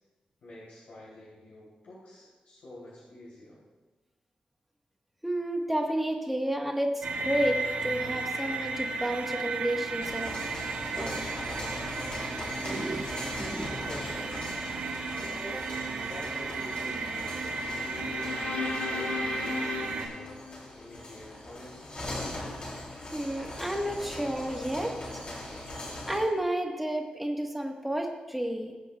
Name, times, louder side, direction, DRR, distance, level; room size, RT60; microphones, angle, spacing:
voice 1, 0.4-3.6 13.9-14.4 15.0-15.4 16.0-17.9 18.8-20.4 20.7-22.0, left 1 dB, 85° left, -7 dB, 3.1 m, -48 dB
voice 2, 5.2-10.3 10.9-11.2 12.6-13.1 13.4-13.9 15.4-15.6 23.1-25.2 26.1-28.7, right 1 dB, 5° right, 1 dB, 1.3 m, -31 dB
sound 1, 7.0-20.1, right 3 dB, 85° right, 2.9 m, -34 dB
sound 2, 9.9-26.3, left 1 dB, 40° left, 2.9 m, -41 dB
sound 3, 17.7-21.1, left 4 dB, 70° left, 1.1 m, -36 dB
21.0 x 8.2 x 2.3 m, 1.3 s
wide cardioid pair, 150°, 3 cm